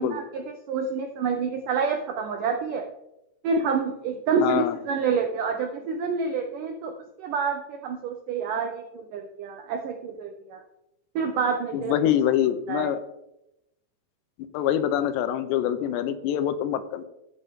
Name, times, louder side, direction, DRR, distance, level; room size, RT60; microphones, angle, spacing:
voice 1, 0.0-2.9 3.4-10.6 11.2-12.1 12.7-12.9, right 5 dB, 80° right, 5 dB, 1.9 m, -28 dB
voice 2, 4.4-4.8 11.7-13.0 14.5-17.0, left 10 dB, 85° left, 9 dB, 3.0 m, -25 dB
14.5 x 9.7 x 3.7 m, 0.88 s
omnidirectional pair, 4.9 m